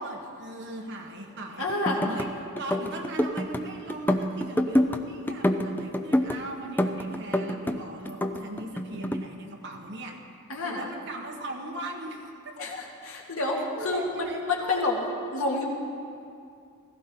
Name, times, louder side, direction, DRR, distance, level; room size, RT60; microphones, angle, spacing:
voice 1, 0.0-1.7 1.9-2.3 2.6-10.2 10.6-12.5 13.8-14.8, right 2 dB, 60° right, 1 dB, 1.6 m, -38 dB
voice 2, 1.6-2.0 10.5-10.9 12.6-15.0 15.3-15.6, left 2 dB, 85° left, -2 dB, 2.1 m, -29 dB
sound 1, 1.7-2.3 2.6-3.6 3.9-5.0 5.3-6.4 6.8-7.8 8.1-9.2, left 1 dB, 10° left, 0.5 m, -26 dB
16.0 x 15.0 x 3.9 m, 2.5 s
head